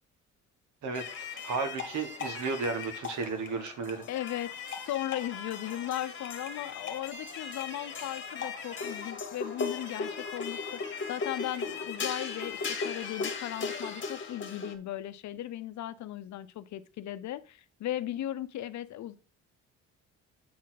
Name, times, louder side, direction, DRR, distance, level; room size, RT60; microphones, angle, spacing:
voice 1, 0.8-4.0, right 4 dB, 75° right, 1.5 m, -34 dB
sound 1, 0.9-14.7, left 5 dB, 40° left, 1.3 m, -37 dB
voice 2, 4.1-4.5 4.8-19.2, left 12 dB, 65° left, 0.7 m, -37 dB
8.4 x 4.2 x 4.1 m
cardioid pair, 90°, 30 cm